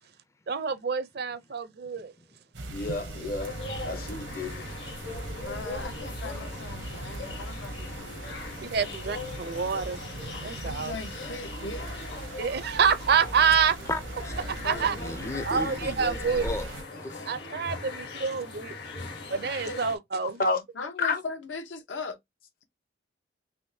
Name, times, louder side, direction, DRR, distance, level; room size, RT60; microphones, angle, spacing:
voice 1, 0.5-2.1 8.6-10.0 10.4-10.9 12.4-13.7 14.6-14.9 15.5-16.5 17.3-18.7 19.3-20.4, right 6 dB, 55° right, 0.5 m, -27 dB
sound 1, 2.5-16.8, right 2 dB, 80° right, 0.9 m, -40 dB
voice 2, 2.7-3.5 3.8-4.8 20.2-20.6 21.0-21.2, left 3 dB, 50° left, 0.8 m, -30 dB
sound 2, 3.4-20.0, left 3 dB, 65° left, 1.3 m, -40 dB
voice 3, 5.4-9.0 10.6-12.1 14.6-14.9 19.6-19.8 20.7-22.2, left 3 dB, 80° left, 0.9 m, -39 dB
voice 4, 13.9-14.4 14.7-16.7 17.0-17.4 17.8-18.0 18.9-19.1, left 2 dB, 15° left, 0.4 m, -36 dB
3.5 x 2.9 x 2.7 m
head